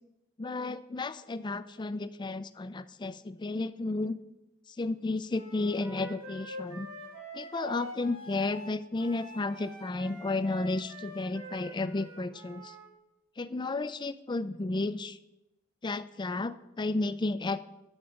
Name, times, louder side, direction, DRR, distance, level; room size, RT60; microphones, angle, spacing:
voice 1, 0.4-4.2 4.8-6.9 7.3-12.7 13.4-15.2 15.8-17.6, left 2 dB, 25° left, 14 dB, 0.4 m, -33 dB
Wind instrument woodwind instrument, 5.3-12.9, equal, 85° right, 2.6 m, -45 dB
11.0 x 7.3 x 5.0 m, 0.93 s
head